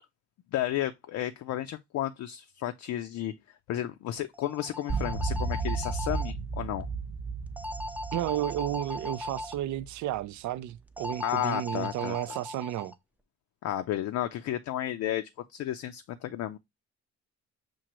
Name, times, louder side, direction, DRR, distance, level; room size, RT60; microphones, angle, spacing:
voice 1, 0.5-3.3 3.7-6.9 11.2-12.2 13.6-16.6, left 12 dB, 70° left, 0.5 m, -32 dB
sound 1, 4.3-6.3 7.6-9.6 11.0-12.9, left 1 dB, 5° right, 0.4 m, -38 dB
sound 2, 4.9-10.3, right 4 dB, 40° right, 0.9 m, -34 dB
voice 2, 8.1-12.9, right 13 dB, 70° right, 0.4 m, -32 dB
6.1 x 2.5 x 2.9 m
cardioid pair, 90°, 30 cm